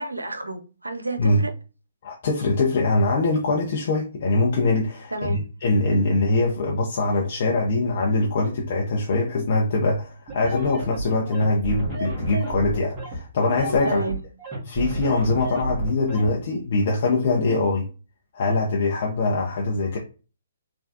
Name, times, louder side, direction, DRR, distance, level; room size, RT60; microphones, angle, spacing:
voice 1, 0.0-1.5 5.1-5.4 13.8-14.2, right 2 dB, 90° right, 0.6 m, -30 dB
voice 2, 2.0-14.0 14.7-17.9 18.3-20.0, left 2 dB, 50° left, 0.7 m, -23 dB
sound 1, 10.3-16.3, right 2 dB, 25° right, 1.3 m, -31 dB
3.4 x 2.2 x 2.7 m
figure-of-eight pair, 130°, 0 cm